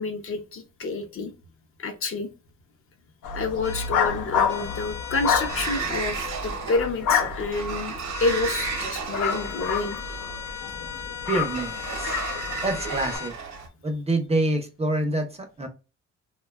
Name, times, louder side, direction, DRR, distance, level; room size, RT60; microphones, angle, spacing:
voice 1, 0.0-1.3 1.8-2.3 3.3-10.0, left 3 dB, 45° left, 6 dB, 0.6 m, -29 dB
sound 1, 3.2-13.2, left 7 dB, 85° left, 0.6 m, -29 dB
sound 2, 3.6-3.9 4.5-5.9 8.1-8.9 9.2-13.4, left 8 dB, 65° left, 1.0 m, -37 dB
Sliding door, 5.5-13.7, right 5 dB, 65° right, 0.8 m, -34 dB
voice 2, 11.3-12.2 12.6-13.3 13.8-15.7, right 2 dB, 20° right, 5 dB, 0.5 m, -26 dB
2.6 x 2.2 x 2.2 m, 0.31 s
cardioid pair, 90°, 30 cm